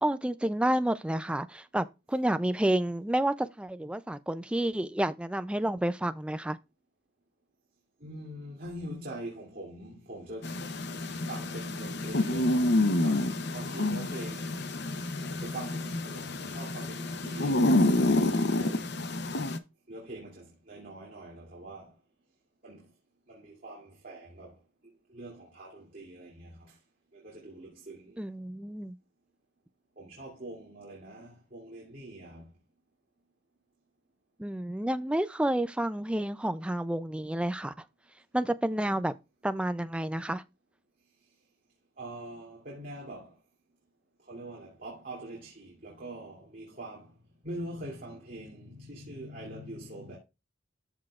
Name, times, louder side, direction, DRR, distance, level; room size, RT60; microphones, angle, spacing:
voice 1, 0.0-6.6 28.2-29.0 34.4-37.7 38.3-39.1 39.4-40.4, right 1 dB, 5° right, 0.3 m, -30 dB
voice 2, 8.0-10.6 11.3-12.7 13.0-14.6 15.3-18.8 19.9-21.9 22.6-22.9 23.3-24.6 24.8-26.8 27.1-28.2 30.0-32.5 42.0-43.4 44.2-47.1 47.4-50.2, right 1 dB, 45° right, 2.6 m, -44 dB
sound 1, 10.4-19.6, left 1 dB, 55° left, 0.7 m, -28 dB
13.5 x 4.8 x 2.4 m
head